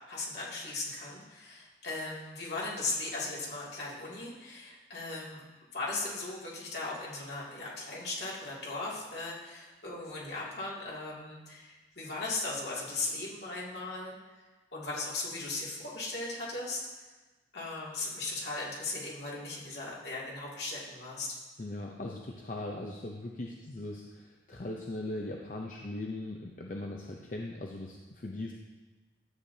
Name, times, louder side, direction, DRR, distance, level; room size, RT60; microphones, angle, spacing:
voice 1, 0.1-5.4 5.7-14.1 14.7-16.8 17.5-21.3, left 3 dB, 70° left, -5 dB, 2.4 m, -37 dB
voice 2, 21.6-28.5, left 2 dB, 45° left, 0 dB, 0.6 m, -39 dB
13.0 x 8.3 x 2.7 m, 1.2 s
head